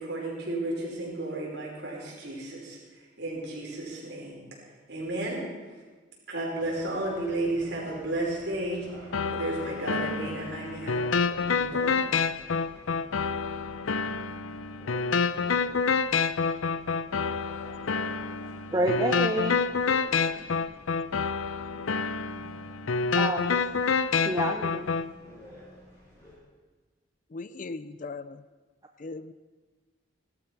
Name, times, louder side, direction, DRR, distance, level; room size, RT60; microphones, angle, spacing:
voice 1, 0.0-4.4 4.9-5.4 6.3-11.0 11.4-12.1, right 2 dB, 55° right, -4 dB, 5.1 m, -33 dB
sound 1, 6.6-26.3, equal, 20° left, 6.6 m, -49 dB
sound 2, 9.1-25.1, left 5 dB, 90° left, 0.6 m, -28 dB
voice 2, 18.7-19.7 23.1-23.6 24.2-24.9, right 1 dB, 20° right, 4 dB, 0.6 m, -28 dB
voice 3, 27.3-28.4 29.0-29.3, left 3 dB, 40° left, 15 dB, 0.4 m, -38 dB
16.5 x 12.5 x 6.0 m, 1.4 s
head